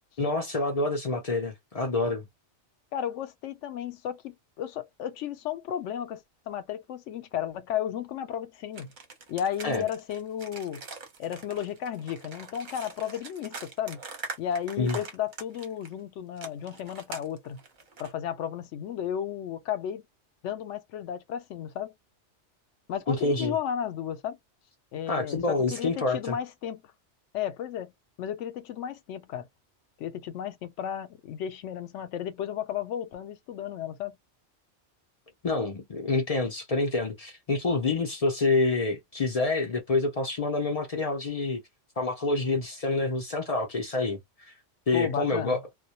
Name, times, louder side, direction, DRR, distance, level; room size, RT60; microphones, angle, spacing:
voice 1, 0.2-2.2 9.6-9.8 14.8-15.0 23.1-23.5 25.1-26.4 35.4-41.6 42.0-44.5 44.9-45.6, left 3 dB, 50° left, 0.4 m, -27 dB
voice 2, 2.9-8.9 9.3-10.8 11.2-14.0 14.4-17.6 18.0-20.0 20.4-21.9 22.9-24.4 24.9-26.8 27.3-27.9 28.2-29.5 30.0-34.2 44.9-45.6, left 9 dB, 85° left, 0.9 m, -34 dB
sound 1, 8.7-15.9 16.4-18.1, right 4 dB, 50° right, 0.8 m, -43 dB
2.2 x 2.1 x 2.7 m
omnidirectional pair, 1.2 m